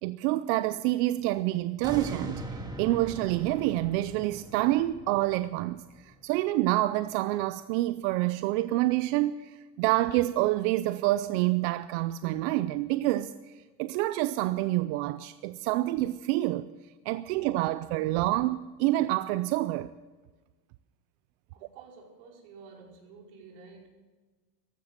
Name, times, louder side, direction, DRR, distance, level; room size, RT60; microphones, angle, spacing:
voice 1, 0.0-2.4 2.8-13.3 13.8-16.7 17.1-19.9, right 16 dB, 50° right, 0.5 m, -27 dB
sound 1, 1.8-6.9 7.4-7.5, right 2 dB, 10° right, 1.9 m, -42 dB
voice 2, 21.5-23.9, right 4 dB, 65° right, 5.1 m, -51 dB
14.5 x 12.5 x 6.7 m
supercardioid pair, 155°, 46 cm